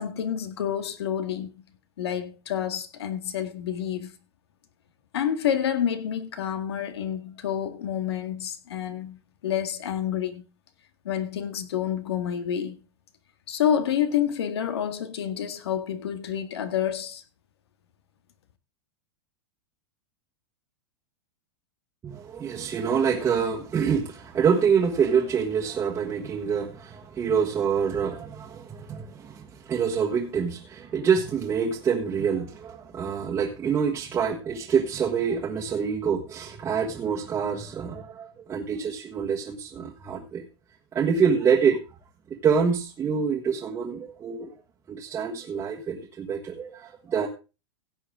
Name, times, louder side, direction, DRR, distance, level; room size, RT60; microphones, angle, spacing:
voice 1, 0.0-1.5 2.0-4.1 5.1-9.2 9.4-10.4 11.1-12.8 13.5-17.2, left 9 dB, 85° left, 1.9 m, -28 dB
voice 2, 22.0-40.4 40.9-41.8 42.3-44.5 44.9-47.3, right 6 dB, 20° right, 1.5 m, -26 dB
16.5 x 7.9 x 3.7 m
supercardioid pair, 155°, 13 cm